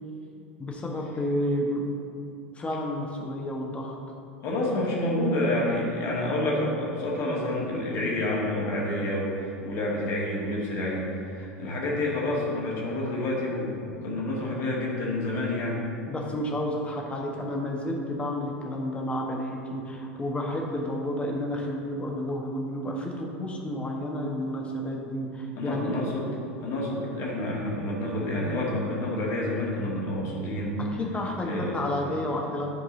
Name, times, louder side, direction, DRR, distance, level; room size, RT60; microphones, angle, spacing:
voice 1, 0.6-1.9 2.5-4.0 16.1-26.0 30.8-32.7, left 1 dB, 15° left, 0 dB, 1.3 m, -31 dB
voice 2, 4.4-15.8 25.6-26.3 26.6-30.8 31.4-32.1, left 1 dB, 45° left, -3 dB, 2.0 m, -29 dB
11.5 x 4.7 x 3.9 m, 2.7 s
figure-of-eight pair, 80°, 7 cm